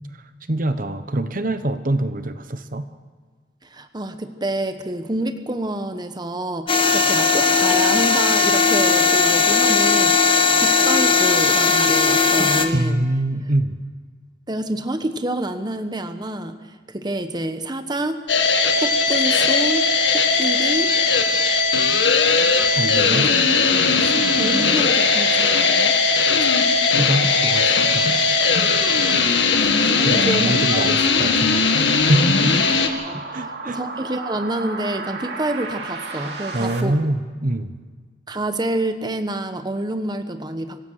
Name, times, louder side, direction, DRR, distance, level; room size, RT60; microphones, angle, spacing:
voice 1, 0.5-2.9 12.7-13.8 22.7-23.3 26.4-26.5 26.9-28.1 30.0-31.6 31.9-32.6 33.3-33.8 36.5-37.7, right 1 dB, 50° right, 10 dB, 1.1 m, -24 dB
voice 2, 3.6-13.1 14.5-16.6 16.9-18.3 18.8-20.9 22.7-23.3 24.0-26.0 29.1-29.3 29.6-30.9 33.0-36.9 38.3-40.8, right 1 dB, 25° right, 8 dB, 1.1 m, -28 dB
sound 1, 6.7-12.7, left 4 dB, 30° left, 1.5 m, -17 dB
sound 2, 18.3-32.9, left 4 dB, 85° left, 2.0 m, -18 dB
sound 3, 28.4-36.8, right 3 dB, 65° right, 2.6 m, -35 dB
25.5 x 16.0 x 6.4 m, 1.5 s
head